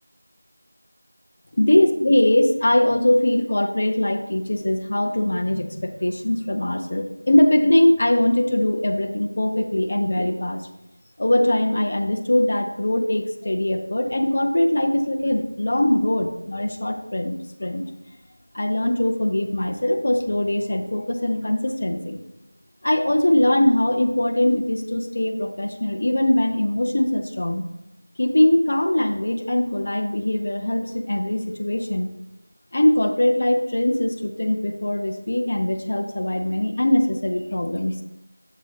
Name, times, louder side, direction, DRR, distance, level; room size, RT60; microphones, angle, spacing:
voice 1, 1.6-10.7 11.2-17.9 18.5-22.2 22.8-27.6 28.2-32.1 32.7-38.0, left 1 dB, 30° left, 6 dB, 0.6 m, -21 dB
8.8 x 7.3 x 2.7 m, 0.90 s
figure-of-eight pair, 180°, 0 cm